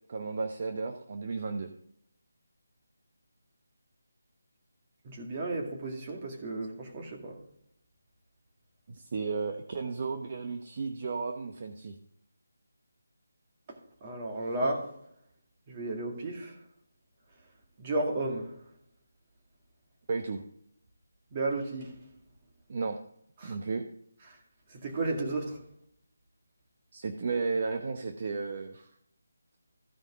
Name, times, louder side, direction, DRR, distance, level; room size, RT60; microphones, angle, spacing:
voice 1, 0.1-1.7 8.9-11.9 20.1-20.4 22.7-23.0 23.4-23.8 26.9-28.9, right 4 dB, 40° right, 0.9 m, -33 dB
voice 2, 5.0-7.4 14.0-14.9 15.7-16.6 17.8-18.5 21.3-21.9 23.4-23.6 24.7-25.6, right 2 dB, 25° right, 2.2 m, -33 dB
15.5 x 5.3 x 3.7 m
figure-of-eight pair, 165°, 0 cm